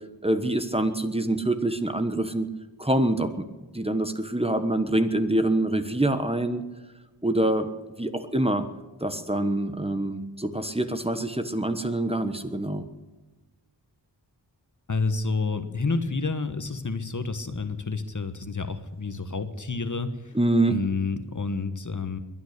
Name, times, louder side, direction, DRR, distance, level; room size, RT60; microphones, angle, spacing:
voice 1, 0.2-2.5 2.8-3.3 3.7-6.6 7.2-7.7 8.0-8.6 9.0-12.9 20.3-20.8, right 1 dB, 15° right, 8 dB, 1.2 m, -25 dB
voice 2, 14.9-20.3 20.7-22.2, left 4 dB, 45° left, 9 dB, 1.4 m, -29 dB
22.5 x 9.5 x 6.7 m, 1.2 s
wide cardioid pair, 80°, 43 cm